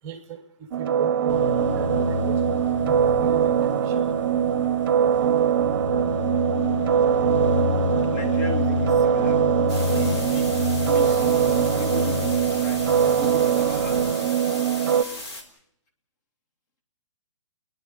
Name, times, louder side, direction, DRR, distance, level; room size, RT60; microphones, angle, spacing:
voice 1, 0.0-2.5 2.8-4.2, right 8 dB, 15° right, 9 dB, 0.9 m, -39 dB
sound 1, 0.7-15.0, right 9 dB, 45° right, 0.7 m, -22 dB
sound 2, 1.3-14.1, left 6 dB, 85° left, 0.9 m, -30 dB
voice 2, 8.1-9.5 9.9-12.8 13.2-14.4, left 1 dB, 35° left, 8 dB, 2.5 m, -37 dB
sound 3, 9.7-15.4, left 2 dB, 55° left, 3.8 m, -37 dB
29.5 x 11.0 x 9.6 m, 0.75 s
hypercardioid pair, 170°, 16 cm